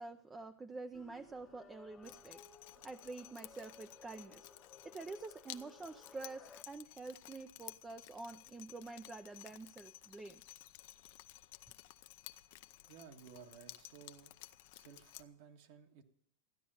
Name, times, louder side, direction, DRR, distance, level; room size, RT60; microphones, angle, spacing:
voice 1, 0.0-2.4 2.8-4.5 4.8-10.4, right 3 dB, 15° right, 9 dB, 0.5 m, -48 dB
sound 1, 0.9-6.6, left 5 dB, 20° left, 0.9 m, -59 dB
Drip, 2.0-15.2, left 16 dB, 55° left, 0.6 m, -55 dB
voice 2, 12.9-14.3 14.7-16.0, right 7 dB, 60° right, 3 dB, 1.7 m, -56 dB
14.0 x 9.9 x 5.6 m, 0.70 s
supercardioid pair, 140°, 0 cm